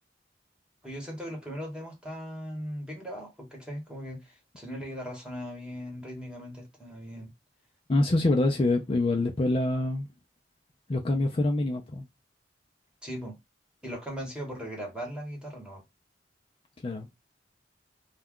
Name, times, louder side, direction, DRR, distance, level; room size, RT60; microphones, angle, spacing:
voice 1, 0.8-7.3 13.0-13.4 13.8-15.8, equal, 5° right, 1.1 m, -39 dB
voice 2, 7.9-10.1 10.9-12.1 16.8-17.1, left 2 dB, 30° left, 0.4 m, -25 dB
2.3 x 2.2 x 3.5 m
head